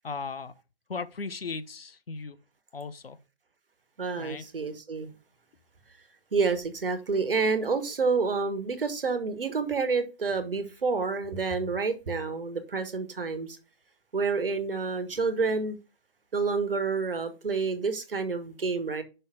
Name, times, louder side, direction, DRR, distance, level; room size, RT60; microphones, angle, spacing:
voice 1, 0.0-0.5 0.9-2.4 2.7-3.2 4.2-4.5, left 4 dB, 70° left, 0.9 m, -37 dB
voice 2, 4.0-5.1 6.3-13.6 14.1-15.8 16.3-19.0, right 4 dB, 65° right, 1.4 m, -28 dB
5.7 x 5.6 x 4.7 m
figure-of-eight pair, 145°, 30 cm